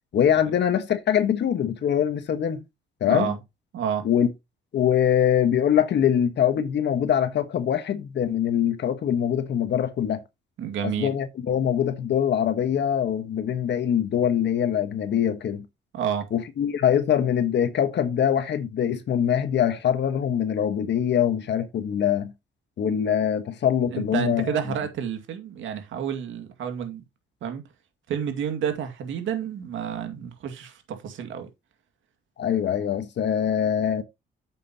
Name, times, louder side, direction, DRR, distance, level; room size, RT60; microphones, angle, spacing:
voice 1, 0.1-2.6 3.0-3.3 4.0-4.3 4.7-10.2 10.8-15.6 16.3-22.3 22.8-24.5 32.4-34.0, left 9 dB, 60° left, 1.4 m, -23 dB
voice 2, 3.7-4.1 10.6-11.2 15.9-16.3 23.9-27.0 27.4-27.6 28.1-31.5, right 8 dB, 75° right, 2.3 m, -30 dB
9.3 x 7.6 x 2.9 m
cardioid pair, 90°, 20 cm